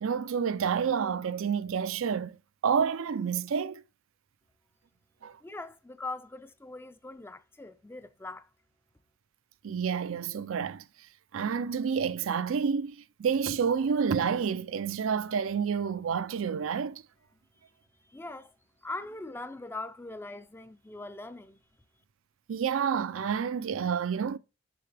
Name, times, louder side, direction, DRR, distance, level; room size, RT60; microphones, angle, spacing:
voice 1, 0.0-2.4 2.6-3.8 5.2-5.4 9.6-10.8 11.3-17.0 22.5-24.4, right 6 dB, 75° right, 0.4 m, -29 dB
voice 2, 5.4-8.5 18.0-18.5 18.8-21.6, left 2 dB, 10° left, 0.4 m, -41 dB
7.0 x 5.7 x 3.3 m
head